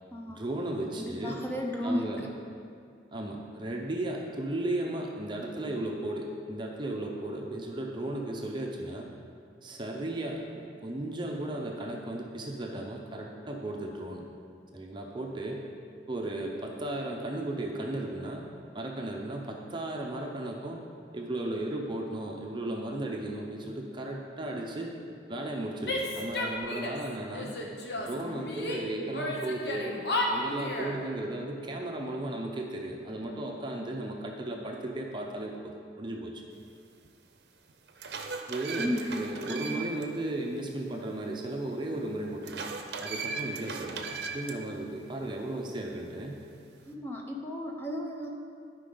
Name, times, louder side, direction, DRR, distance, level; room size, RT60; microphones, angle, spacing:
voice 1, 0.4-1.4 1.8-2.3 3.1-9.1 9.6-14.2 14.7-15.6 16.1-18.4 18.7-20.8 21.1-24.9 25.3-27.6 28.0-29.9 30.3-36.4 38.5-42.7 43.0-46.4, right 1 dB, 25° right, 0 dB, 0.6 m, -35 dB
voice 2, 1.0-2.1 38.8-39.2 39.5-39.7 46.9-48.3, equal, 10° left, 0 dB, 0.7 m, -33 dB
Female speech woman speaking / Yell, 25.8-27.0 27.3-28.8 29.1-31.0, left 2 dB, 65° left, 1.0 m, -33 dB
sound 1, 37.0-37.1 37.7-40.0 40.4-40.5 42.4-44.5, right 4 dB, 65° right, 0.6 m, -37 dB
12.0 x 5.3 x 3.9 m, 2.4 s
head